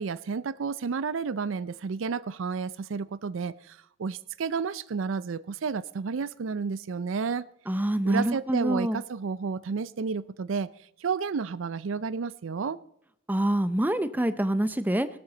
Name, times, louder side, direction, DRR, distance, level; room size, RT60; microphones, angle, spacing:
voice 1, 0.0-7.4 8.0-10.7 11.0-12.8, right 5 dB, 85° right, 0.5 m, -31 dB
voice 2, 7.7-9.0 13.3-15.1, right 1 dB, 10° right, 0.5 m, -26 dB
16.0 x 12.5 x 3.9 m
head